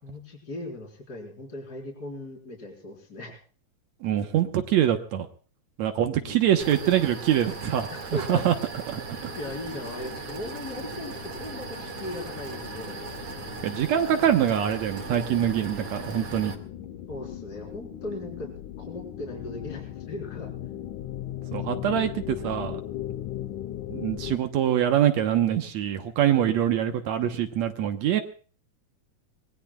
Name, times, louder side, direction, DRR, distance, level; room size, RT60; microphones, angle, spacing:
voice 1, 0.0-3.4 6.2-6.8 7.9-8.5 9.3-13.1 17.1-20.5, left 2 dB, 30° left, -1 dB, 4.8 m, -38 dB
voice 2, 4.0-5.3 5.8-8.5 9.2-9.3 13.6-16.5 21.5-22.8 23.9-28.2, right 10 dB, 70° right, 6 dB, 2.2 m, -24 dB
sound 1, 6.3-24.4, left 12 dB, 85° left, 2.4 m, -39 dB
sound 2, 6.6-16.5, right 5 dB, 50° right, 2.9 m, -39 dB
25.0 x 20.0 x 2.3 m, 0.41 s
omnidirectional pair, 3.5 m